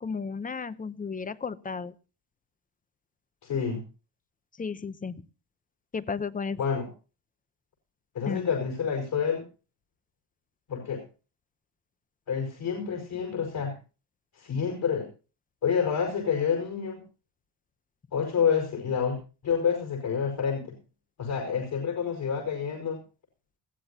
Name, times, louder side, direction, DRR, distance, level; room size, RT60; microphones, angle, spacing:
voice 1, 0.0-1.9 4.6-5.2 5.9-6.6 8.3-8.5, left 5 dB, 20° left, 15 dB, 0.7 m, -33 dB
voice 2, 3.4-3.8 6.6-6.9 8.1-9.4 10.7-11.0 12.3-13.7 14.4-15.1 15.6-17.0 18.1-19.2 19.4-20.8 21.2-23.0, left 6 dB, 60° left, 2 dB, 5.5 m, -28 dB
20.5 x 15.5 x 2.8 m, 0.34 s
cardioid pair, 165°, 41 cm